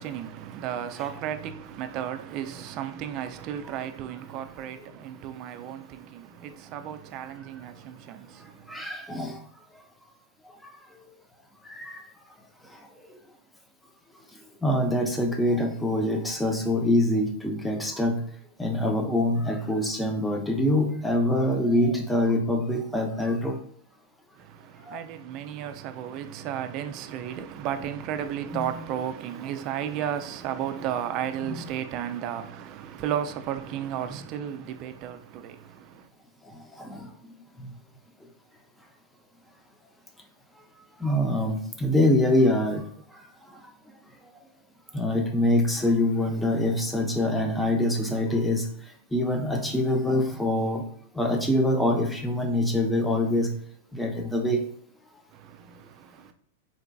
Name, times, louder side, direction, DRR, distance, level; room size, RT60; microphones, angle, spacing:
voice 1, 0.0-8.9 24.4-36.1 55.3-56.3, right 10 dB, 45° right, 0.3 m, -34 dB
voice 2, 8.7-9.4 11.7-12.0 14.6-18.2 18.6-23.6 24.9-25.0 28.5-28.7 31.5-31.6 36.8-37.0 41.0-42.8 44.9-48.7 49.1-50.8 51.2-53.5 53.9-54.6, left 1 dB, 5° left, 0.6 m, -24 dB
3.9 x 2.4 x 2.2 m
hypercardioid pair, 115°, 0 cm